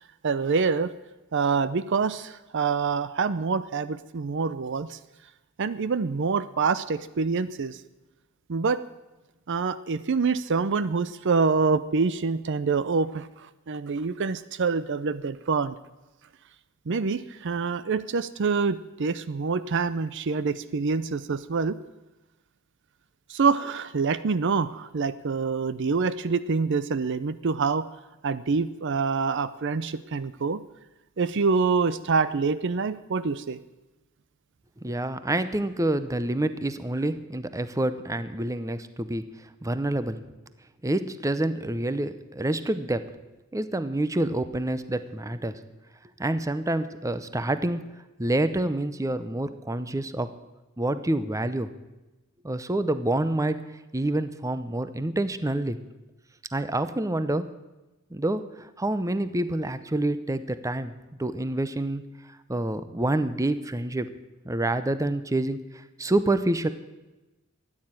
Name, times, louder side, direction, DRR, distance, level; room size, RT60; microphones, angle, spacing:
voice 1, 0.2-0.9 1.3-5.0 5.6-7.8 8.5-8.8 9.5-15.8 16.9-21.8 23.3-27.9 28.2-30.6 31.2-33.6, right 4 dB, 55° right, 15 dB, 0.5 m, -26 dB
voice 2, 34.8-40.2 40.8-43.0 43.5-45.6 46.2-47.8 48.2-50.3 50.8-51.7 52.4-53.6 53.9-55.8 56.5-57.5 58.1-60.9 61.2-62.0 62.5-64.1 64.4-66.7, right 1 dB, 15° right, 12 dB, 0.7 m, -27 dB
14.0 x 9.8 x 8.9 m, 1.1 s
head